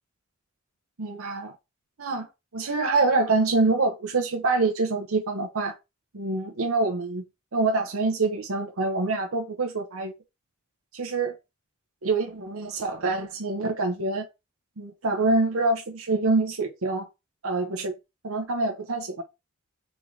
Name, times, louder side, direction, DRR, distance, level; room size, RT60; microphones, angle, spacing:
voice 1, 1.0-1.5 2.0-2.3 2.5-5.7 6.1-7.2 7.5-10.1 10.9-11.3 12.0-14.2 14.8-17.1 17.4-17.9 18.2-19.2, right 3 dB, 85° right, 0.9 m, -25 dB
3.9 x 3.7 x 3.2 m
head